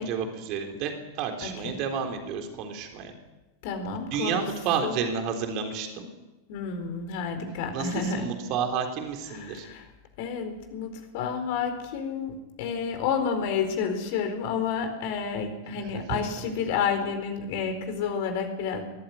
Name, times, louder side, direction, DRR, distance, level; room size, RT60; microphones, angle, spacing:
voice 1, 0.0-3.1 4.1-6.1 7.7-9.7 16.1-16.2, right 6 dB, 40° right, 4 dB, 3.7 m, -30 dB
voice 2, 1.4-1.7 3.6-4.5 4.8-5.0 6.5-8.3 9.3-9.9 10.2-18.8, left 6 dB, 50° left, 6 dB, 4.5 m, -30 dB
22.5 x 14.5 x 9.9 m, 1.1 s
figure-of-eight pair, 90°, 0 cm